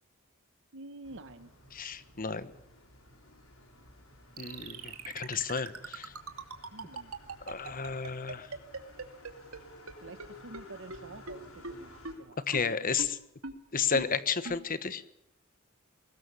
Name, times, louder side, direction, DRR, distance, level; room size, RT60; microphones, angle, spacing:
voice 1, 0.7-1.5 6.7-7.1 10.0-12.4, right 2 dB, 65° right, 12 dB, 1.2 m, -48 dB
sound 1, 1.0-12.2, left 1 dB, 75° left, 6.3 m, -56 dB
voice 2, 1.7-2.5 4.4-6.1 7.5-8.5 12.5-13.2 13.7-15.0, left 6 dB, 40° left, 14 dB, 1.3 m, -32 dB
Clicker down long, 4.4-9.6 9.9-10.0 10.2-10.3 10.5-10.6 10.9-11.0 11.3-11.4 11.6-11.7 12.0-12.1 12.5-12.6 13.0-13.1 13.4-13.5 13.9-14.0 14.4-14.6, right 3 dB, 90° right, 2.6 m, -39 dB
22.0 x 19.0 x 7.0 m, 0.80 s
head